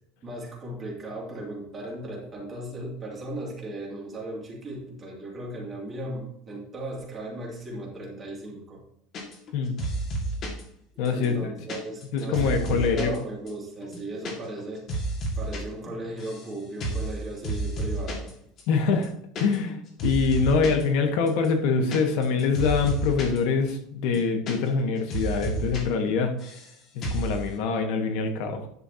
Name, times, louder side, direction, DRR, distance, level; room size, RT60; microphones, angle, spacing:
voice 1, 0.2-8.8 10.9-14.8 15.3-18.3, right 1 dB, 20° right, -2 dB, 2.5 m, -36 dB
sound 1, 9.1-9.5 9.8-10.6 11.0-13.2 13.5-13.6 13.8-14.3 14.6-15.6 15.9-16.5 16.8-17.1 17.4-18.3 18.6-18.7 18.9-19.7 20.0-20.8 21.3-23.4 23.7-23.8 24.0-24.8 25.1-25.8 26.1-26.7 27.0-27.3, right 2 dB, 30° left, 1.9 m, -31 dB
voice 2, 11.0-11.3 12.1-13.1 18.7-19.1 19.4-26.3 27.1-28.7, left 5 dB, 55° left, 5 dB, 1.3 m, -24 dB
11.0 x 6.5 x 2.8 m, 0.73 s
cardioid pair, 175°, 0 cm